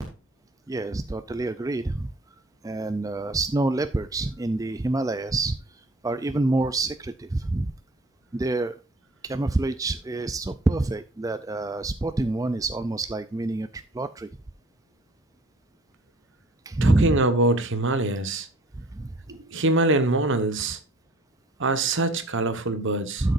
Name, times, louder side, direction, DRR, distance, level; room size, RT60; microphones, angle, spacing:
voice 1, 0.7-2.1 2.6-5.6 6.0-7.7 8.3-8.7 9.2-13.7 13.9-14.3 16.7-17.2 18.8-19.1 23.2-23.3, right 2 dB, 15° right, 0.3 m, -26 dB
voice 2, 16.8-18.5 19.3-20.8 21.6-23.3, right 2 dB, 60° right, 1.2 m, -24 dB
12.0 x 6.6 x 2.5 m
head